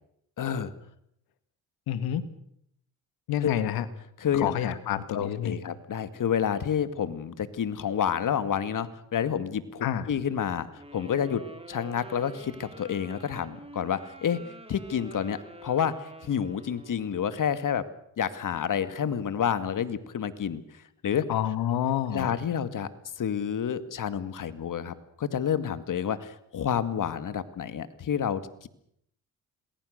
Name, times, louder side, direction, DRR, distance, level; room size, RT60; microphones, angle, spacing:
voice 1, 0.4-0.7 3.4-3.5 4.2-4.7 5.1-11.4 11.7-14.4 14.7-17.8 18.2-20.6 21.0-21.2 22.1-22.9 23.2-28.7, left 8 dB, 60° left, 13 dB, 2.2 m, -29 dB
voice 2, 1.9-2.2 3.3-3.9 4.4-5.6 9.8-10.1 21.3-22.3, left 10 dB, 80° left, 13 dB, 2.0 m, -28 dB
Wind instrument woodwind instrument, 10.8-17.2, right 1 dB, 15° right, 5.5 m, -47 dB
27.5 x 20.5 x 6.7 m, 0.73 s
supercardioid pair, 55°, 36 cm